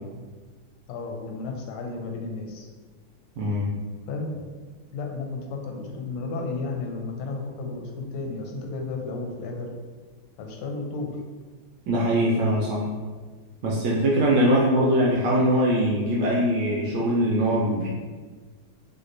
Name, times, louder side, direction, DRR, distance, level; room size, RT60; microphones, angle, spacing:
voice 1, 0.9-2.7 4.1-4.3 4.9-9.7 10.4-11.1, left 3 dB, 85° left, 2 dB, 1.4 m, -33 dB
voice 2, 3.4-3.7 11.9-12.9 13.6-17.9, equal, 75° right, -5 dB, 1.0 m, -22 dB
3.2 x 2.8 x 2.5 m, 1.4 s
omnidirectional pair, 2.3 m